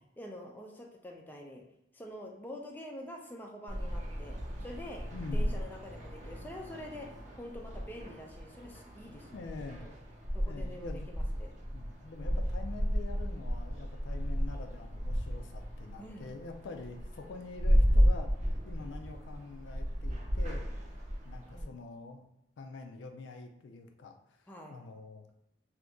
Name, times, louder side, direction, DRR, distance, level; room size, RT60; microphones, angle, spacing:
voice 1, 0.2-1.6 1.9-4.4 4.6-9.9 10.3-11.5 16.0-16.3 21.5-21.8 24.5-24.8, left 1 dB, 10° left, 0 dB, 0.4 m, -46 dB
sound 1, 3.7-21.6, equal, 40° right, 0.6 m, -33 dB
voice 2, 5.1-5.5 9.3-9.9 10.5-11.1 11.7-18.3 18.6-20.7 21.2-22.2 22.6-24.4 24.7-25.3, left 3 dB, 75° left, 4 dB, 0.4 m, -45 dB
2.8 x 2.5 x 3.4 m, 0.83 s
head